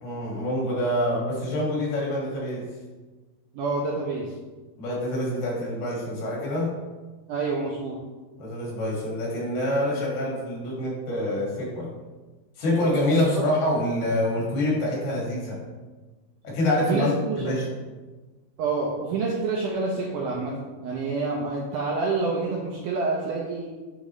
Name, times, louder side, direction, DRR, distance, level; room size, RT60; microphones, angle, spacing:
voice 1, 0.0-2.6 4.8-6.7 8.4-11.9 12.6-15.6 16.4-17.1 17.4-17.7, left 1 dB, 75° left, -5 dB, 3.8 m, -26 dB
voice 2, 3.5-4.3 7.3-8.0 13.4-13.5 16.9-17.5 18.6-23.7, right 3 dB, 80° right, -3 dB, 1.8 m, -27 dB
9.8 x 3.7 x 3.1 m, 1.3 s
omnidirectional pair, 4.5 m